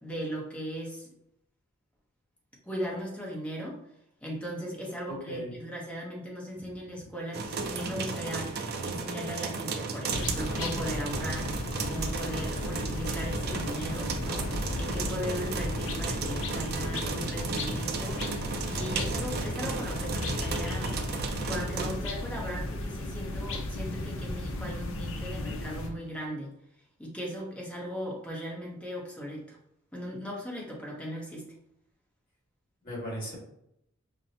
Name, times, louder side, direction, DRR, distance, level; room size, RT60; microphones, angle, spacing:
voice 1, 0.0-1.1 2.6-3.8 4.2-14.5 14.7-18.2 18.6-21.0 21.5-26.5 27.0-29.6 29.9-31.4, equal, 5° left, -3 dB, 0.8 m, -38 dB
voice 2, 5.1-5.5 6.9-7.1 32.8-33.4, equal, 40° left, -4 dB, 1.4 m, -38 dB
sound 1, 7.3-21.9, right 4 dB, 50° right, 0.4 m, -34 dB
sound 2, 10.1-25.9, left 1 dB, 65° left, 0.5 m, -35 dB
5.7 x 2.0 x 2.7 m, 0.77 s
head